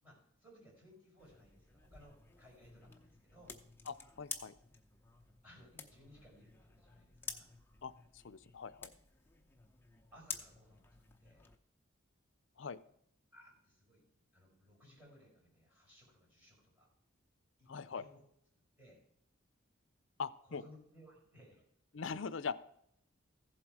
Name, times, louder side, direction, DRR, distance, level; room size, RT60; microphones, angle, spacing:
voice 1, 0.0-3.6 5.4-7.5 10.1-10.9 11.2-11.5 13.3-14.0 14.3-16.9 17.6-18.2 18.8-19.0 20.4-21.6, equal, 10° right, -3 dB, 5.5 m, -61 dB
sound 1, 1.2-11.6, left 5 dB, 10° left, 0.7 m, -51 dB
voice 2, 3.9-4.5 7.8-8.9 12.6-12.8 17.7-18.0 20.2-20.6 21.9-22.5, left 5 dB, 65° left, 16 dB, 0.5 m, -42 dB
15.0 x 7.6 x 4.7 m, 0.73 s
head